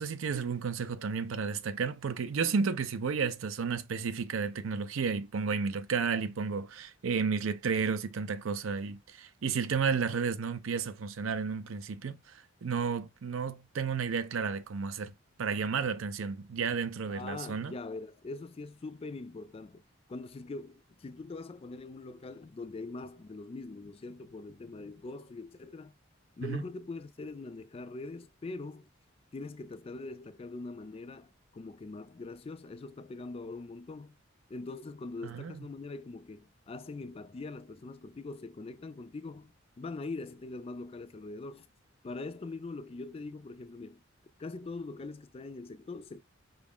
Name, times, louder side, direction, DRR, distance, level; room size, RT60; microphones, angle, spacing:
voice 1, 0.0-15.1 15.4-17.7 26.4-26.6 35.2-35.6, right 5 dB, 85° right, 0.5 m, -32 dB
voice 2, 17.1-19.8 20.1-25.9 26.4-28.9 29.3-34.2 34.5-41.7 42.0-44.0 44.4-46.2, left 3 dB, 30° left, 0.3 m, -42 dB
4.9 x 2.4 x 3.5 m
head